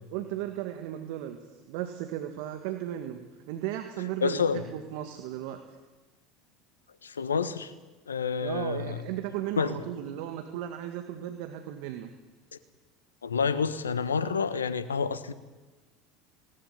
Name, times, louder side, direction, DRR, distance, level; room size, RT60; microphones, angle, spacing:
voice 1, 0.1-1.4 1.7-5.6 8.4-12.1, right 12 dB, 65° right, 6 dB, 2.0 m, -35 dB
voice 2, 4.2-4.6 7.0-7.7 8.1-9.0 9.6-9.8 13.2-15.3, left 5 dB, 85° left, 14 dB, 1.3 m, -28 dB
19.5 x 19.0 x 9.8 m, 1.2 s
hypercardioid pair, 75°, 0 cm